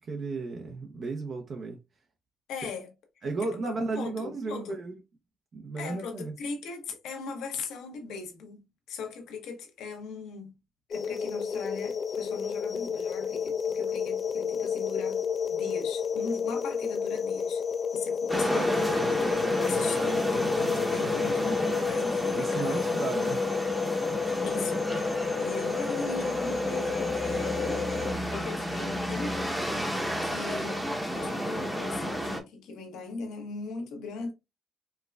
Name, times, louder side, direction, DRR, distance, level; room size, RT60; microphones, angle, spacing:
voice 1, 0.1-1.8 3.2-5.0 5.5-6.3 22.3-23.4, right 3 dB, 50° right, 0.7 m, -34 dB
voice 2, 2.5-2.9 3.4-4.8 5.8-10.5 10.9-15.2 15.5-17.6 17.9-23.0 24.4-29.8 30.2-30.9 31.1-34.3, left 4 dB, 85° left, 1.0 m, -39 dB
sound 1, 10.9-28.1, left 6 dB, 45° left, 0.4 m, -30 dB
sound 2, 18.3-32.4, equal, 5° right, 0.8 m, -31 dB
4.5 x 2.2 x 2.2 m
cardioid pair, 90°, 0 cm